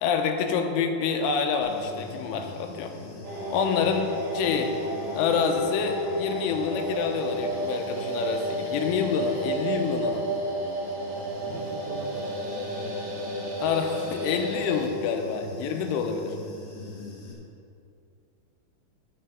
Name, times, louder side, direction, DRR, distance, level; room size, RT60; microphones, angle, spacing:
voice 1, 0.0-2.9 3.5-4.7 5.1-10.2 13.6-16.3, left 6 dB, 85° left, 4 dB, 3.2 m, -27 dB
Human voice / Buzz, 1.6-17.3, left 3 dB, 55° left, 2.2 m, -43 dB
sound 1, 3.2-14.9, right 1 dB, 55° right, 2.5 m, -32 dB
voice 2, 11.5-13.0 13.5-13.6, right 4 dB, 80° right, -1 dB, 3.1 m, -42 dB
9.8 x 7.4 x 5.7 m, 2.5 s
omnidirectional pair, 5.7 m